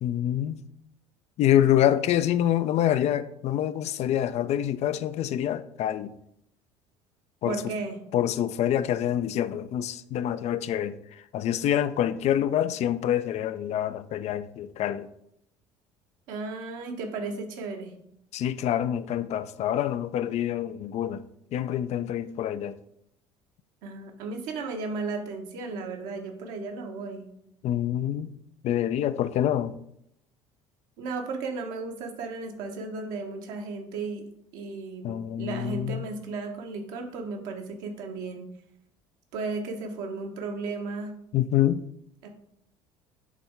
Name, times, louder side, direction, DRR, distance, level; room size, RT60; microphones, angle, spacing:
voice 1, 0.0-0.6 1.4-6.1 7.4-7.6 8.1-11.0 11.3-15.1 18.3-21.2 21.5-22.8 27.6-28.3 28.6-29.7 35.0-36.0 41.3-41.8, left 11 dB, 45° left, 0.5 m, -26 dB
voice 2, 7.4-8.0 16.3-17.9 23.8-27.3 31.0-34.2 34.5-38.5 39.3-41.1 42.2-42.3, right 3 dB, 60° right, 1.2 m, -34 dB
8.2 x 3.5 x 4.6 m
figure-of-eight pair, 60°, 16 cm